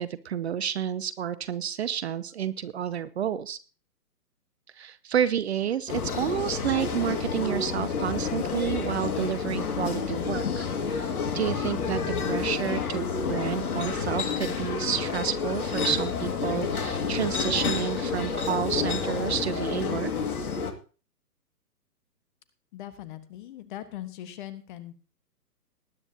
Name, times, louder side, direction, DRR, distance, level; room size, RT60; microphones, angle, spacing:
voice 1, 0.0-3.6 4.8-20.1, right 9 dB, 45° right, 16 dB, 0.7 m, -30 dB
sound 1, 5.9-20.7, left 5 dB, 65° left, 2.2 m, -29 dB
voice 2, 22.7-24.9, left 13 dB, 30° left, 12 dB, 1.4 m, -40 dB
19.5 x 9.9 x 2.8 m, 0.35 s
figure-of-eight pair, 130°, 47 cm